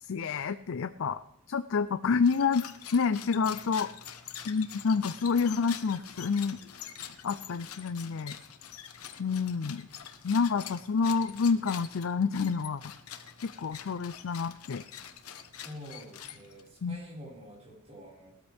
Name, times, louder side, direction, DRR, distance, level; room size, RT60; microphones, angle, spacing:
voice 1, 0.0-1.2 1.5-2.6 2.9-3.9 4.5-6.6 7.2-8.4 9.2-9.9 10.2-12.8 13.4-14.8 16.8-17.0, left 5 dB, 60° left, 12 dB, 0.5 m, -28 dB
sound 1, 2.2-16.8, left 9 dB, 80° left, 1.2 m, -45 dB
voice 2, 15.6-18.3, equal, 30° right, -3 dB, 5.2 m, -48 dB
19.5 x 13.5 x 3.5 m, 0.82 s
head